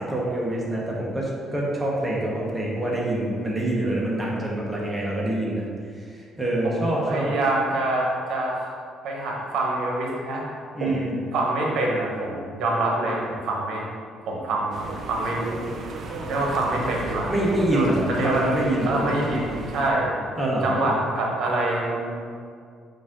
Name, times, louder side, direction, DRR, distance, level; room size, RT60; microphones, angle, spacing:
voice 1, 0.0-5.7 5.9-7.3 10.7-11.2 17.3-19.2 20.4-21.0, right 1 dB, 5° right, -5 dB, 0.7 m, -25 dB
voice 2, 7.1-13.8 14.3-15.7 16.3-17.3 17.7-18.5 18.9-20.1 20.6-22.1, right 2 dB, 70° right, -1 dB, 0.9 m, -26 dB
sound 1, 14.7-19.9, right 3 dB, 45° right, 0.4 m, -35 dB
4.8 x 2.5 x 3.6 m, 2.2 s
cardioid pair, 145°, 0 cm